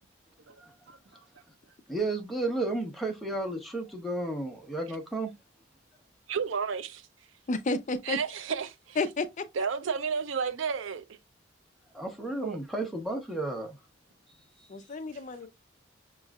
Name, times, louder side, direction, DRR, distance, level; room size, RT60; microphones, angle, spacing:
voice 1, 1.9-5.3 11.9-13.8, right 2 dB, ahead, 0.9 m, -32 dB
voice 2, 6.3-7.1 8.0-9.0 9.5-11.0 12.4-12.6, right 6 dB, 80° right, 0.5 m, -32 dB
voice 3, 7.5-8.2 9.0-9.5 14.7-15.5, left 3 dB, 40° left, 0.4 m, -31 dB
6.2 x 3.0 x 2.4 m
head